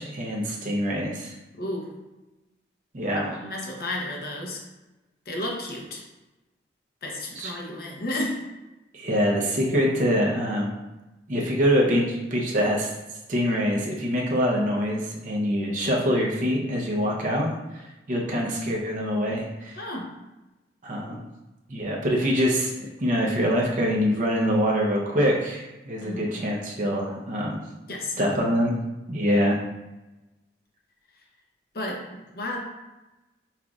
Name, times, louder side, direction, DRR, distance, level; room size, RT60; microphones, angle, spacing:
voice 1, 0.0-1.3 2.9-3.4 7.3-7.5 8.9-10.7 11.3-12.9 13.3-19.8 20.8-21.2 21.7-22.7 23.0-27.6 28.2-28.7 29.1-29.6, equal, 45° right, -2 dB, 0.6 m, -24 dB
voice 2, 1.6-1.9 3.3-4.6 5.3-6.0 7.0-8.4 19.8-20.1 26.0-26.4 27.9-28.3 31.7-32.6, left 1 dB, 55° left, 0 dB, 0.7 m, -32 dB
5.5 x 2.4 x 2.3 m, 1.1 s
head